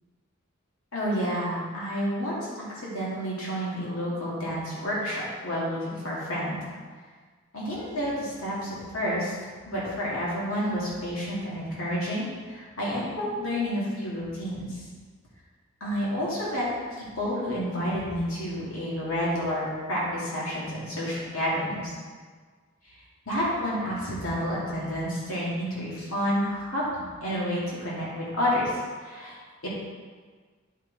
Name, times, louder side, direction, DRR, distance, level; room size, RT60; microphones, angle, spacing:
voice 1, 0.9-6.6 7.5-14.8 15.8-22.0 23.3-29.7, equal, 90° left, -7 dB, 2.5 m, -30 dB
10.0 x 5.8 x 4.2 m, 1.5 s
head